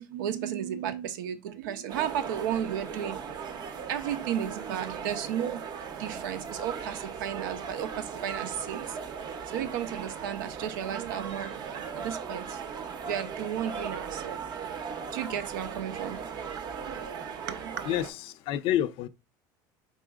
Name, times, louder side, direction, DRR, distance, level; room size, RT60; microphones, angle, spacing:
voice 1, 0.0-3.4 3.9-9.0 9.5-12.6 13.0-14.4 15.1-17.7, right 9 dB, 90° right, 0.5 m, -34 dB
sound 1, 1.9-18.1, right 6 dB, 40° right, 0.6 m, -38 dB
voice 2, 17.9-19.1, left 11 dB, 60° left, 0.4 m, -28 dB
4.1 x 3.7 x 2.3 m
supercardioid pair, 110°, 10 cm